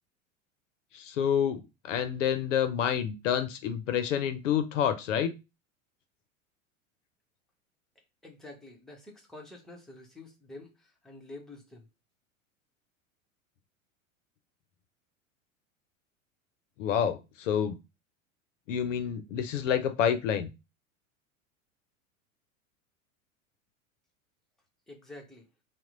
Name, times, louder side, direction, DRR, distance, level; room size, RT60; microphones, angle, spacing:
voice 1, 0.9-5.3 16.8-17.7 18.7-20.5, left 8 dB, 65° left, 0.5 m, -28 dB
voice 2, 8.2-11.9 24.9-25.4, left 2 dB, ahead, 0.8 m, -48 dB
2.9 x 2.1 x 3.6 m
figure-of-eight pair, 85°, 40 cm